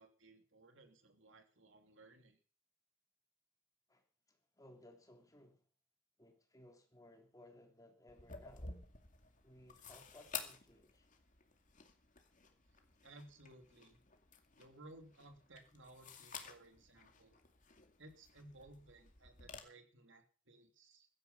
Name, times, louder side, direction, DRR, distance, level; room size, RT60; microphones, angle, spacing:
voice 1, 0.0-2.4 13.0-14.0 14.5-17.3 18.0-21.1, right 2 dB, 65° right, 3.1 m, -60 dB
voice 2, 4.3-5.6 6.2-8.8 9.4-11.1, left 1 dB, 15° left, 3.2 m, -61 dB
sound 1, 8.1-19.6, left 6 dB, 40° left, 2.3 m, -53 dB
16.0 x 12.5 x 5.6 m
head